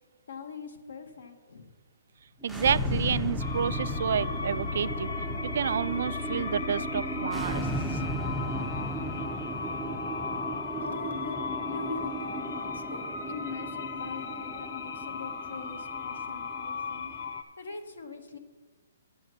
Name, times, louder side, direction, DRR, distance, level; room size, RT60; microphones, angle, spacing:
voice 1, 0.3-1.7 10.8-17.1 17.6-18.4, left 3 dB, 85° left, 6 dB, 1.5 m, -42 dB
sound 1, 2.4-17.4, right 1 dB, ahead, 0.5 m, -36 dB
voice 2, 2.4-7.7, right 8 dB, 65° right, 16 dB, 0.3 m, -30 dB
Bass guitar, 2.6-8.9, left 4 dB, 35° left, 0.9 m, -36 dB
sound 2, 3.4-17.4, left 5 dB, 60° left, 1.1 m, -37 dB
9.7 x 6.9 x 6.4 m, 1.4 s
hypercardioid pair, 155°, 0 cm